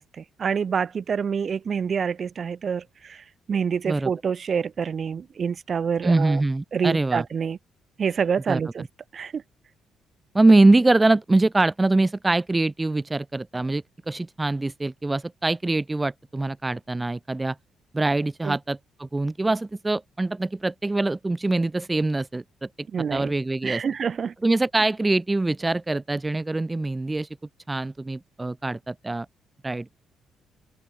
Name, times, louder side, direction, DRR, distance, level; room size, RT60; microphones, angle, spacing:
voice 1, 0.2-6.4 6.7-7.6 8.0-8.8 9.1-9.4 18.4-18.6 22.9-23.3 23.6-24.3, right 6 dB, 45° right, 6.3 m, -27 dB
voice 2, 6.0-7.3 8.5-8.6 10.3-17.6 17.9-23.8 24.4-27.3 27.7-29.3 29.6-29.9, right 2 dB, 15° right, 3.5 m, -23 dB
cardioid pair, 90°, 0 cm